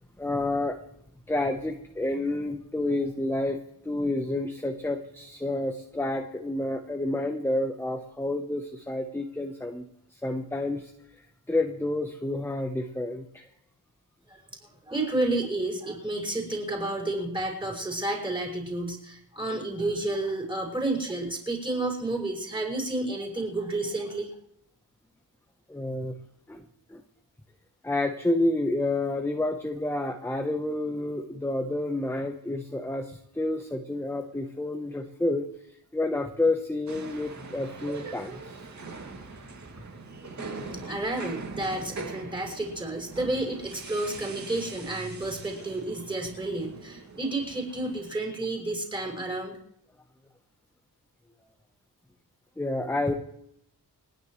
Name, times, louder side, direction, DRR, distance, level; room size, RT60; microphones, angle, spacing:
voice 1, 0.2-0.8 1.3-9.8 10.1-10.9 11.5-13.5 25.7-26.2 26.5-27.0 27.8-35.5 35.9-38.4 52.6-53.1, left 2 dB, 5° left, 5 dB, 1.0 m, -29 dB
voice 2, 14.9-24.3 40.4-49.6, right 2 dB, 10° right, -1 dB, 5.7 m, -31 dB
sound 1, 36.9-48.1, right 3 dB, 45° right, 2.5 m, -42 dB
29.5 x 10.5 x 3.2 m, 0.72 s
wide cardioid pair, 140°, 40 cm